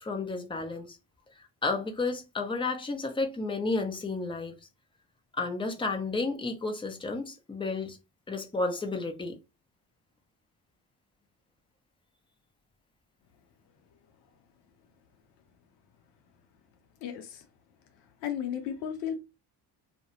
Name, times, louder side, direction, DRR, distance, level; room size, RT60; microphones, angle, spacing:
voice 1, 0.0-1.0 1.6-4.6 5.4-8.0 8.3-9.3, left 3 dB, 10° left, 0.7 m, -32 dB
voice 2, 17.0-17.4 18.2-19.2, left 8 dB, 70° left, 0.7 m, -34 dB
2.3 x 2.2 x 3.0 m
hypercardioid pair, 50°, 50 cm